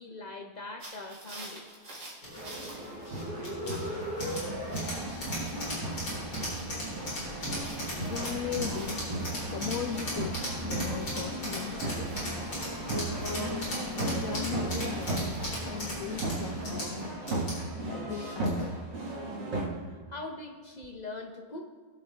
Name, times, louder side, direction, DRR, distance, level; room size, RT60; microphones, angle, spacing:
voice 1, 0.0-1.7 9.2-9.4 19.9-21.6, left 2 dB, 40° left, 3 dB, 0.6 m, -42 dB
sound 1, 0.8-15.5, right 1 dB, 60° right, 2.8 m, -51 dB
sound 2, 2.2-18.8, left 1 dB, 60° left, 4.6 m, -37 dB
sound 3, 2.4-19.7, right 2 dB, 80° right, 2.5 m, -36 dB
voice 2, 8.0-9.0 9.5-12.2 13.3-17.1 17.8-18.8, left 9 dB, 75° left, 8 dB, 0.7 m, -38 dB
20.0 x 7.6 x 3.4 m, 1.4 s
omnidirectional pair, 1.9 m